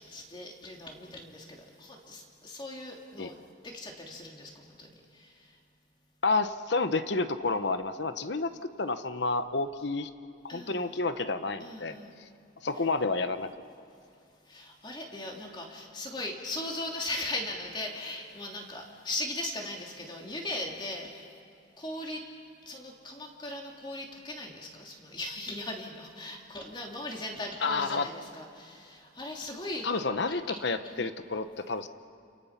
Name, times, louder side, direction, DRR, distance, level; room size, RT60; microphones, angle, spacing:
voice 1, 0.1-3.4 3.6-5.3 10.5-10.9 11.6-12.2 12.7-12.8 14.5-21.3 21.8-22.2 22.6-30.0 30.7-31.1, left 1 dB, 25° left, 0 dB, 2.8 m, -39 dB
voice 2, 6.2-8.5 8.8-10.1 10.4-12.0 12.6-13.5 27.6-28.1 29.8-31.9, left 3 dB, 60° left, 10 dB, 1.0 m, -30 dB
30.0 x 28.0 x 5.9 m, 2.6 s
head